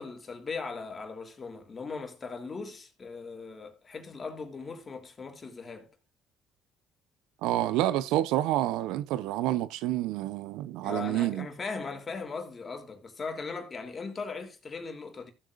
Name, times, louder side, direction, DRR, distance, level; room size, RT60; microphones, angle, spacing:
voice 1, 0.0-5.9 10.8-15.3, left 4 dB, 35° left, 3.1 m, -39 dB
voice 2, 7.4-11.5, right 14 dB, 80° right, 0.7 m, -28 dB
15.5 x 7.8 x 2.5 m
supercardioid pair, 70°, 0 cm